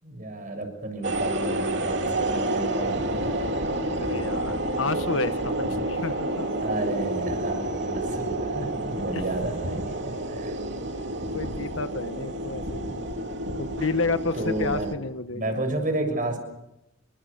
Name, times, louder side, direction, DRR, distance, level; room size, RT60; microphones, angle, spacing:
voice 1, 0.0-3.0 6.6-10.6 14.3-14.9 15.3-16.4, right 2 dB, 40° right, 6 dB, 6.8 m, -31 dB
sound 1, 1.0-14.9, right 1 dB, 60° right, 2.7 m, -29 dB
voice 2, 4.0-6.5 9.1-9.2 11.3-12.9 13.6-15.6, left 3 dB, 80° left, 11 dB, 1.5 m, -30 dB
28.5 x 24.5 x 7.0 m, 0.87 s
head